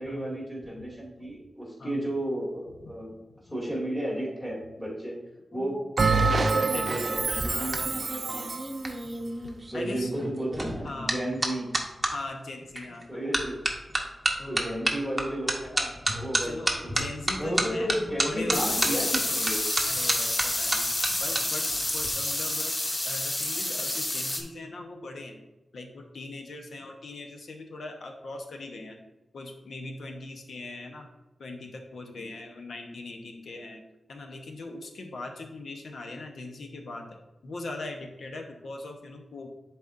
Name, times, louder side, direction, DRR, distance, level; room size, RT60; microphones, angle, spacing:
voice 1, 0.0-3.2 3.5-5.2 5.5-7.8 8.2-8.6 9.7-11.7 13.1-13.6 14.5-17.0 17.4-19.7, equal, 5° left, -4 dB, 2.2 m, -33 dB
Bell, 6.0-8.8, right 4 dB, 50° right, 0.3 m, -26 dB
voice 2, 6.3-7.9 9.7-10.1 10.8-11.2 12.1-13.0 14.4-14.7 16.4-19.0 19.9-22.7 23.0-25.4 25.7-29.0 29.3-31.1 31.4-33.8 34.1-37.1 37.4-39.5, left 2 dB, 80° left, 3 dB, 0.9 m, -40 dB
sound 1, 7.1-12.1 12.8-13.0 13.3-21.4 21.7-22.1, right 1 dB, 15° right, 0.8 m, -30 dB
sound 2, 18.5-24.4, left 1 dB, 30° left, 0.8 m, -29 dB
10.5 x 4.1 x 2.5 m, 1.0 s
wide cardioid pair, 140°, 0 cm